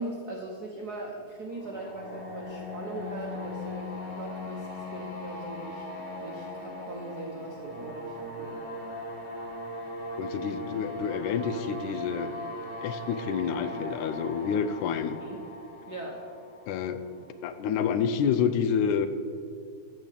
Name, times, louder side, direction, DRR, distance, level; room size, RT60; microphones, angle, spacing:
voice 1, 0.0-8.6 15.2-15.4 15.9-16.2, right 2 dB, 70° right, -1 dB, 0.9 m, -40 dB
sound 1, 1.5-17.3, left 1 dB, 30° left, 1.0 m, -39 dB
voice 2, 10.2-12.3 12.8-15.2 16.7-17.0 17.4-19.1, left 7 dB, 85° left, 11 dB, 2.1 m, -28 dB
13.0 x 4.6 x 8.3 m, 2.2 s
omnidirectional pair, 3.4 m